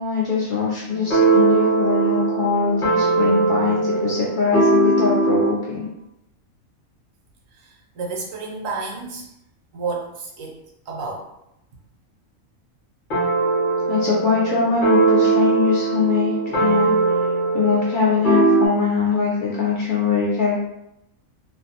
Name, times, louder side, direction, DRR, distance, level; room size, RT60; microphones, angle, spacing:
voice 1, 0.0-5.9 13.9-16.9 17.5-20.6, left 5 dB, 85° left, -5 dB, 0.4 m, -22 dB
sound 1, 0.9-5.6 13.1-18.7, right 3 dB, 50° left, 0.7 m, -20 dB
voice 2, 7.5-9.3 9.7-11.3, right 4 dB, 75° right, 0 dB, 1.0 m, -31 dB
2.5 x 2.1 x 2.7 m, 0.83 s
omnidirectional pair, 1.4 m